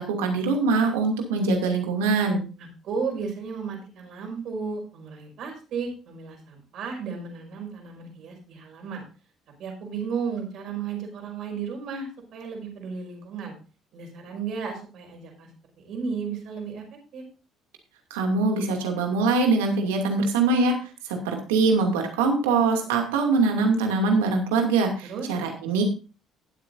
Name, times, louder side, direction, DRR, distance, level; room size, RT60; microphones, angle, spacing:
voice 1, 0.0-2.4 18.1-20.8 21.0-25.8, right 3 dB, 85° right, 3 dB, 2.6 m, -23 dB
voice 2, 2.6-9.0 9.6-13.6 13.9-15.5 15.8-17.2 25.0-25.3, right 5 dB, 65° right, 2 dB, 5.5 m, -34 dB
19.5 x 8.2 x 2.7 m, 0.35 s
hypercardioid pair, 60°, 0 cm